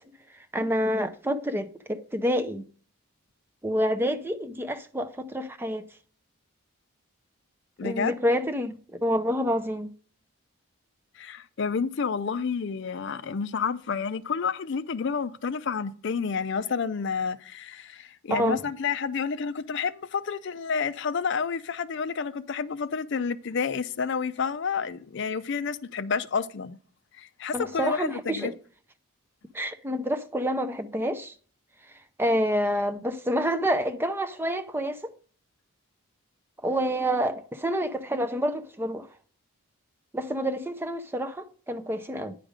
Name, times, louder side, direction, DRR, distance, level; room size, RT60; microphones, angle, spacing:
voice 1, 0.5-2.6 3.6-5.8 7.8-9.9 18.3-18.6 27.5-28.5 29.5-31.3 32.2-35.1 36.6-39.1 40.1-42.4, equal, 10° right, 0.4 m, -28 dB
voice 2, 7.8-8.1 11.2-26.8 27.2-28.5, left 5 dB, 50° left, 0.4 m, -30 dB
9.7 x 5.1 x 5.0 m
head